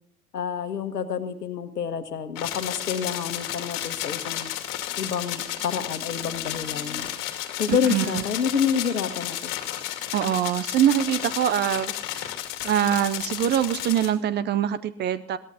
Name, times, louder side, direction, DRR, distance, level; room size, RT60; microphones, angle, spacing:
voice 1, 0.3-4.5 5.0-7.1 7.6-9.5, left 7 dB, 80° left, 10 dB, 1.5 m, -28 dB
sound 1, 2.4-14.1, left 13 dB, 45° left, 2.4 m, -32 dB
sound 2, 2.9-7.1, left 1 dB, 10° left, 6.8 m, -53 dB
voice 2, 7.7-8.2 10.1-12.3 12.6-15.4, right 10 dB, 25° right, 15 dB, 0.5 m, -24 dB
22.0 x 17.5 x 2.8 m, 0.71 s
figure-of-eight pair, 85°, 47 cm